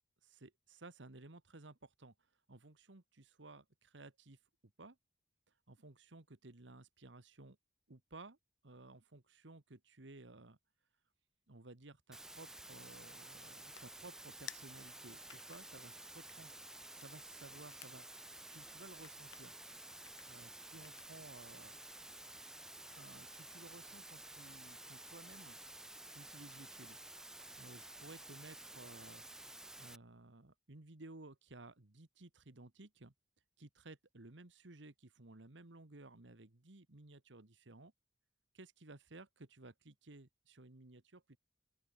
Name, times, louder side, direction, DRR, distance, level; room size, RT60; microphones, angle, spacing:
voice 1, 0.2-2.1 2.5-4.4 4.8-5.0 5.7-7.6 7.9-8.4 8.6-10.6 11.5-18.2 18.5-19.5 20.3-21.8 23.0-25.6 26.1-27.0 27.6-29.2 29.7-33.1 33.6-37.9 38.5-41.4, right 2 dB, 80° right, 1.6 m, -56 dB
sound 1, 12.1-30.0, right 1 dB, 5° right, 0.3 m, -52 dB
sound 2, 12.7-21.4, left 11 dB, 90° left, 3.4 m, -60 dB
open air
head